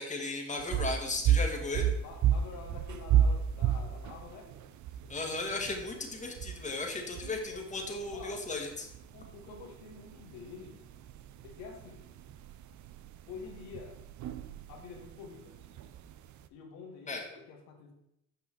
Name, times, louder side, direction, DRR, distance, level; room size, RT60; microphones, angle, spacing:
voice 1, 0.0-1.9 5.1-8.9 17.1-17.2, left 2 dB, 20° left, 1 dB, 1.7 m, -36 dB
sound 1, 0.6-16.5, right 9 dB, 55° right, 0.6 m, -33 dB
voice 2, 2.0-4.5 7.1-7.7 8.1-8.4 9.1-10.8 11.4-12.1 13.3-14.0 14.7-15.6 16.5-17.9, left 5 dB, 85° left, 0 dB, 1.5 m, -48 dB
6.6 x 5.4 x 4.6 m, 0.80 s
supercardioid pair, 65°, 34 cm